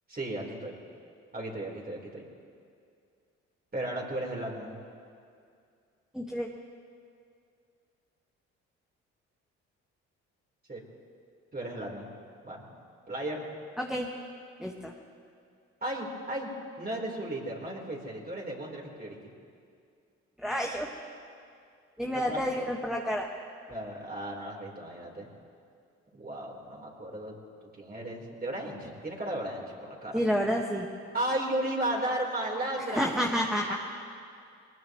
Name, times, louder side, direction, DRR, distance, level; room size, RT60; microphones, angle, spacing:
voice 1, 0.1-0.8 1.3-2.2 3.7-4.8 10.7-10.8 11.5-12.1 12.4-12.6 13.1-13.5 15.8-16.5 16.8-19.3 22.1-22.4 23.7-25.3 26.1-27.3 27.7-30.3 31.1-33.1 33.7-33.8, right 1 dB, 30° right, -2 dB, 4.1 m, -35 dB
voice 2, 6.1-6.5 13.8-14.1 14.6-14.9 20.4-20.9 22.0-23.3 30.1-30.9 32.9-33.7, equal, ahead, 0 dB, 1.6 m, -29 dB
22.5 x 20.5 x 3.1 m, 2.3 s
hypercardioid pair, 45°, 33 cm